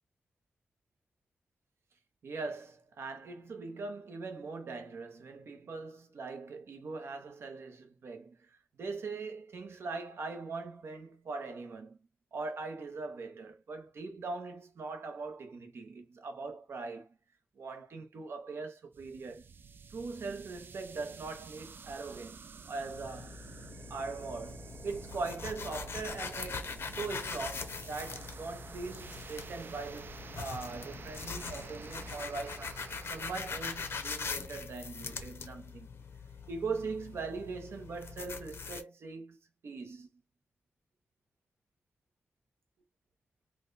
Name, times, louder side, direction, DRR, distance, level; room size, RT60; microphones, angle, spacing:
voice 1, 2.2-8.4 8.8-12.0 12.3-17.1 17.6-19.4 19.9-23.4 23.9-32.8 33.1-35.9 36.5-39.4 39.6-40.1, right 4 dB, 70° right, 0.9 m, -41 dB
sound 1, 18.9-34.2, right 5 dB, 55° right, 0.4 m, -50 dB
sound 2, 22.9-38.8, left 5 dB, 70° left, 0.8 m, -42 dB
3.0 x 2.2 x 3.9 m
cardioid pair, 75°, 4 cm